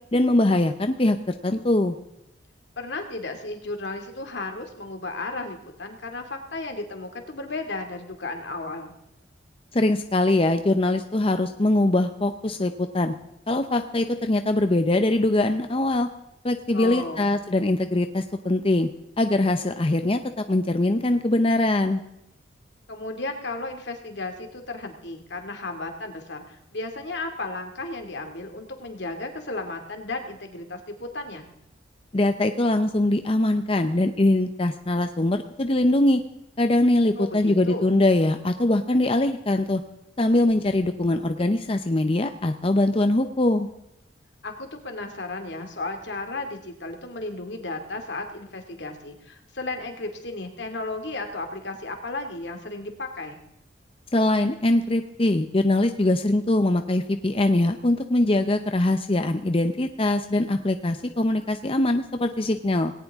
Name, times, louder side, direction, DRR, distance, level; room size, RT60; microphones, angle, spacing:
voice 1, 0.1-2.0 9.7-13.1 13.5-16.1 16.4-18.9 19.2-20.2 20.5-22.0 32.1-36.2 36.6-39.8 40.2-43.7 54.1-62.9, left 1 dB, 30° left, 7 dB, 0.7 m, -22 dB
voice 2, 2.8-8.9 16.7-17.3 22.9-31.4 37.2-38.0 44.4-53.4, left 2 dB, 70° left, 5 dB, 2.4 m, -34 dB
18.5 x 18.0 x 3.6 m, 0.85 s
head